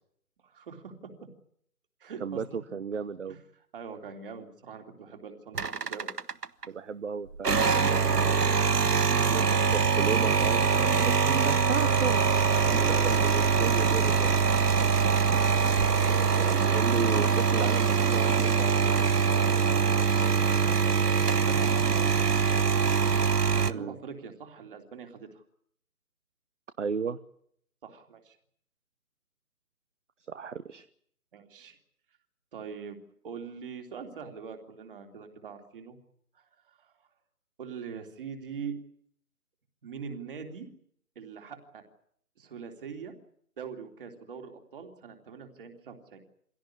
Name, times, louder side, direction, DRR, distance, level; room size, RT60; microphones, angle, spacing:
voice 1, 0.4-1.1 2.0-2.4 3.3-3.4 3.7-6.1 12.5-13.1 16.0-16.5 20.6-22.1 23.5-25.4 27.8-28.4 31.3-31.8 32.5-33.0 33.2-36.0 36.3-36.5 36.8-36.9 37.6-38.7 39.8-40.7 41.2-41.8 42.4-43.1 43.6-46.2, right 6 dB, 35° right, 4 dB, 3.3 m, -42 dB
voice 2, 2.2-3.4 6.7-8.5 9.3-12.2 12.5-14.3 16.1-19.0 23.7-24.0 26.8-27.2 30.3-30.8, right 5 dB, 50° right, 14 dB, 1.1 m, -34 dB
sound 1, 5.5-6.7 7.3-23.7, right 6 dB, 85° right, 1.1 m, -24 dB
24.5 x 17.0 x 9.9 m, 0.69 s
figure-of-eight pair, 145°, 46 cm